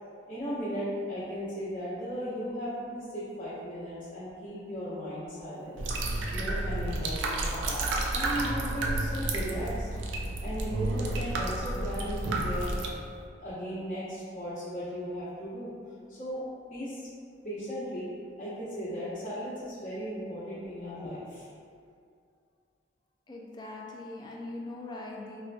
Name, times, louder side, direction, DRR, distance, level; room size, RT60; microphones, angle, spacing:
voice 1, 0.3-9.9 10.4-13.0 13.4-15.7 16.1-16.4 16.7-17.1 17.4-21.5, equal, 45° left, -12 dB, 0.8 m, -36 dB
sound 1, 5.8-12.9, right 2 dB, 85° right, 0.4 m, -31 dB
voice 2, 23.3-25.4, left 2 dB, 25° left, -2 dB, 0.3 m, -41 dB
4.3 x 2.2 x 2.5 m, 2.3 s
head